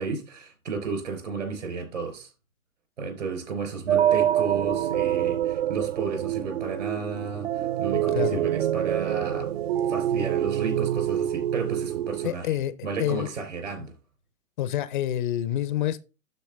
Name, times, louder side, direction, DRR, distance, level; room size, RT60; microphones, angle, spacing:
voice 1, 0.0-2.3 3.0-9.5 9.9-12.6 12.8-13.9, right 5 dB, 70° right, 4.0 m, -33 dB
sound 1, 3.9-12.3, right 11 dB, 50° right, 0.5 m, -26 dB
voice 2, 7.9-8.5 12.2-12.7 13.0-13.3 13.8-13.9 14.6-16.0, left 12 dB, 40° left, 0.5 m, -28 dB
12.0 x 4.3 x 3.4 m
figure-of-eight pair, 110°, 40 cm